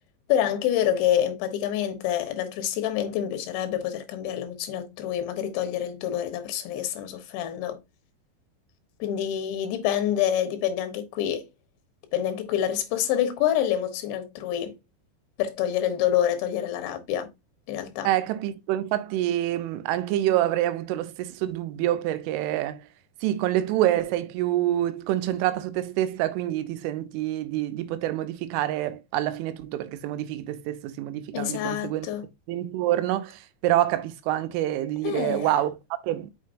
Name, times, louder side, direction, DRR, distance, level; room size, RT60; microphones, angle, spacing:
voice 1, 0.3-7.8 9.0-11.4 12.1-14.7 15.4-17.3 17.7-18.1 31.3-32.3 35.0-35.5, left 10 dB, 75° left, 3.2 m, -27 dB
voice 2, 18.0-22.8 23.2-32.1 32.5-36.3, right 13 dB, 90° right, 3.2 m, -27 dB
6.5 x 6.2 x 2.5 m
omnidirectional pair, 5.5 m